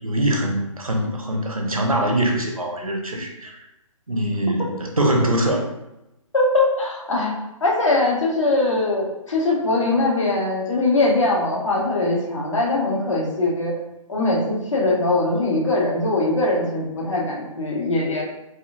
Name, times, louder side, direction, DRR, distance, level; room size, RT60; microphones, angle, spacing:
voice 1, 0.0-3.6 4.1-5.7, right 1 dB, 80° right, 1 dB, 0.8 m, -23 dB
voice 2, 6.3-7.3 7.6-13.7 14.1-18.2, left 2 dB, 60° left, -3 dB, 1.2 m, -21 dB
4.2 x 2.6 x 2.5 m, 0.91 s
figure-of-eight pair, 130°, 18 cm